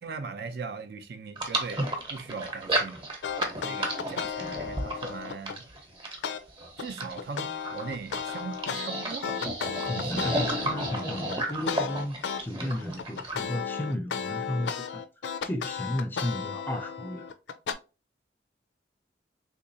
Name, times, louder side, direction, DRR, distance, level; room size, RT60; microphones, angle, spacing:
voice 1, 0.0-3.0 3.6-5.6 6.8-9.4 9.8-10.3, right 4 dB, 60° right, 0.5 m, -39 dB
sound 1, 1.4-13.4, right 1 dB, 25° right, 0.8 m, -33 dB
sound 2, 3.2-5.6 6.2-6.4 6.8-12.4 12.8-17.7, left 6 dB, 85° left, 0.4 m, -34 dB
voice 2, 9.9-15.0 15.4-17.3, left 1 dB, 10° left, 0.4 m, -34 dB
3.6 x 2.9 x 2.6 m
head